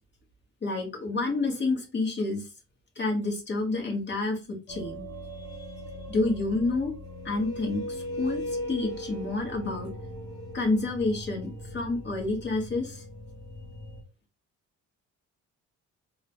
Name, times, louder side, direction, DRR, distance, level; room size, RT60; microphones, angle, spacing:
voice 1, 0.6-2.4 3.0-5.0 6.1-6.9 7.2-9.9 10.5-13.0, left 3 dB, 35° left, 2 dB, 1.4 m, -29 dB
sound 1, 4.7-14.0, left 1 dB, 15° left, 1.1 m, -39 dB
3.6 x 2.2 x 3.0 m, 0.31 s
cardioid pair, 90°, 30 cm